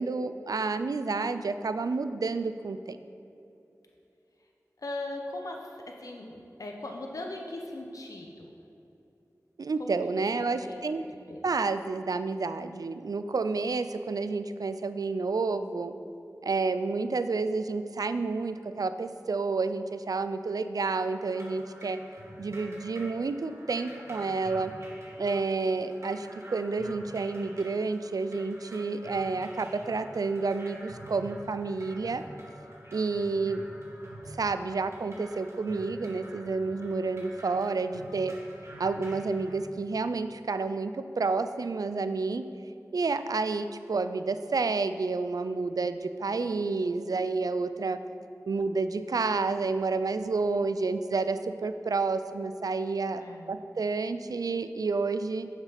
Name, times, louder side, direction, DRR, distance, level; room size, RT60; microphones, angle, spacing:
voice 1, 0.0-3.0 9.6-11.0 11.4-15.9 16.4-22.0 22.4-24.7 25.2-32.2 32.9-33.7 34.3-38.4 38.8-42.5 42.9-48.0 48.5-53.2 53.5-55.5, right 4 dB, 80° right, 11 dB, 0.4 m, -30 dB
voice 2, 4.8-8.5 9.8-10.0 10.5-10.8 11.3-11.4 53.1-53.5, left 2 dB, 65° left, 2 dB, 0.8 m, -39 dB
sound 1, 20.9-39.5, right 1 dB, 45° right, 2.1 m, -47 dB
7.4 x 6.0 x 5.7 m, 2.8 s
wide cardioid pair, 40°, 6 cm